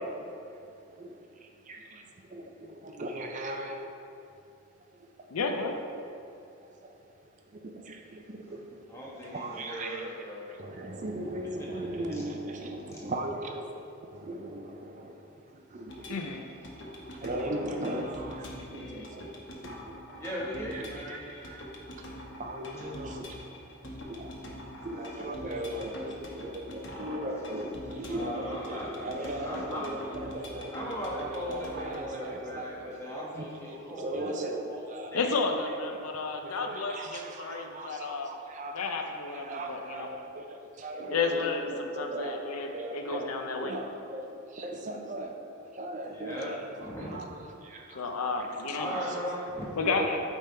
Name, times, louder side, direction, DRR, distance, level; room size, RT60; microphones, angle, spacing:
voice 1, 0.0-3.8 4.8-5.4 6.5-13.7 14.1-16.4 16.7-20.2 20.7-21.7 22.0-23.5 23.9-24.5 24.8-30.7 31.1-35.1 35.7-35.8 36.3-48.5 48.9-49.3 49.9-50.2, right 1 dB, 35° right, 3 dB, 0.4 m, -39 dB
voice 2, 5.3-5.8 16.1-16.4 35.1-38.3 38.7-40.1 41.1-43.7 47.1-47.2 47.9-49.0 49.8-50.2, left 4 dB, 90° left, 4 dB, 0.6 m, -32 dB
voice 3, 8.9-10.4 11.8-12.1 12.9-13.0 17.4-17.7 20.2-21.2 28.1-30.0 30.7-34.3 34.6-35.3 46.1-46.5 46.8-47.3 48.7-49.8, equal, 15° left, -6 dB, 1.2 m, -38 dB
sound 1, 15.9-32.1, equal, 55° left, 0.9 m, -44 dB
8.9 x 3.6 x 4.3 m, 2.6 s
head